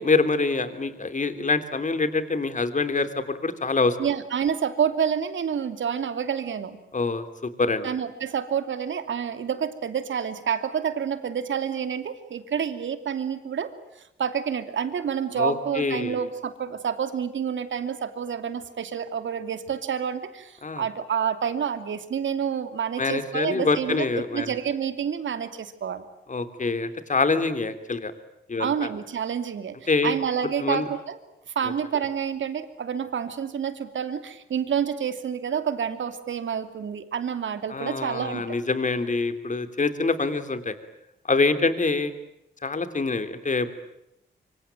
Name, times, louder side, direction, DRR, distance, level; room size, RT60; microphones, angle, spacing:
voice 1, 0.0-4.0 6.9-7.9 15.4-16.2 20.6-20.8 23.0-24.5 26.3-28.1 28.5-28.7 29.9-30.1 30.6-30.8 37.7-40.7 41.3-42.1 42.6-43.7, left 3 dB, 40° left, 10 dB, 3.3 m, -25 dB
voice 2, 4.0-6.8 7.8-13.7 14.0-26.0 28.6-31.2 31.5-38.6, right 7 dB, 75° right, 10 dB, 2.7 m, -28 dB
25.5 x 25.0 x 9.1 m, 0.82 s
cardioid pair, 80°, 20 cm